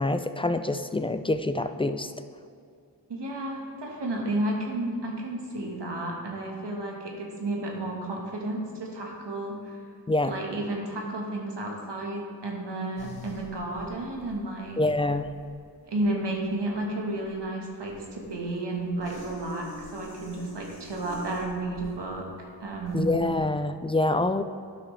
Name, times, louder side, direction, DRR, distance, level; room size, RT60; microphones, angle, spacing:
voice 1, 0.0-2.1 10.1-10.3 14.8-15.3 22.9-24.4, left 2 dB, 15° left, 10 dB, 0.3 m, -26 dB
voice 2, 3.1-9.8 10.3-14.8 15.9-23.1, right 2 dB, 90° right, -1 dB, 1.4 m, -32 dB
sound 1, 13.0-23.6, left 3 dB, 65° left, 2.0 m, -48 dB
11.0 x 5.9 x 3.2 m, 2.4 s
cardioid pair, 45°, 40 cm